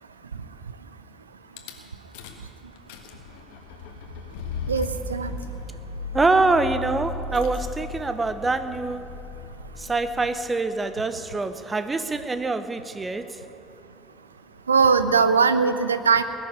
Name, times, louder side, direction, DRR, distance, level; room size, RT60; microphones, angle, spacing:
Rattle / Car / Engine starting, 1.6-1.7 2.1-2.5 2.8-10.5, left 3 dB, 65° left, 1.4 m, -36 dB
voice 1, 4.7-5.3 14.7-16.2, right 5 dB, 85° right, 12 dB, 0.6 m, -20 dB
voice 2, 6.1-9.0 9.8-13.4, right 3 dB, 20° right, 11 dB, 1.0 m, -25 dB
20.0 x 6.7 x 9.8 m, 2.8 s
figure-of-eight pair, 60°, 0 cm